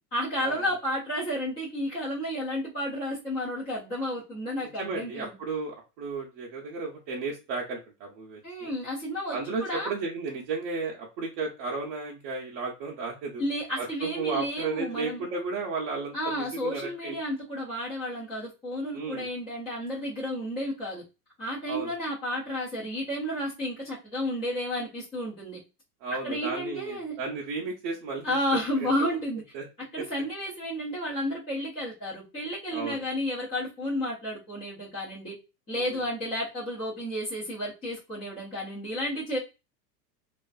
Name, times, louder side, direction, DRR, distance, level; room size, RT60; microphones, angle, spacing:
voice 1, 0.1-5.4 8.4-9.9 13.4-15.3 16.1-21.0 21.4-25.6 26.2-27.2 28.2-29.4 29.9-35.3 35.7-39.4, equal, 15° left, -8 dB, 0.3 m, -32 dB
voice 2, 4.8-8.7 9.3-13.4 13.8-17.2 18.9-19.3 21.7-21.9 26.0-28.4 28.8-28.9 29.5-29.6 32.7-33.0 35.7-36.0, right 4 dB, 40° right, -3 dB, 0.5 m, -34 dB
2.4 x 2.3 x 2.3 m, 0.29 s
supercardioid pair, 135°, 48 cm